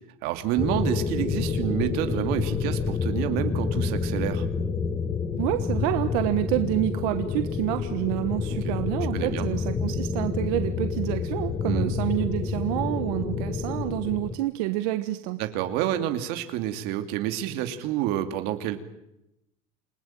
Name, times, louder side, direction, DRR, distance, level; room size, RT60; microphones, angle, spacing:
voice 1, 0.2-4.4 8.6-8.7 9.1-9.5 11.6-11.9 15.4-18.8, right 12 dB, 55° right, 8 dB, 2.7 m, -28 dB
sound 1, 0.6-14.3, left 5 dB, 15° left, 1.4 m, -28 dB
voice 2, 5.4-15.4, right 16 dB, 80° right, 9 dB, 1.4 m, -28 dB
28.5 x 19.0 x 9.2 m, 0.85 s
cardioid pair, 180°, 19 cm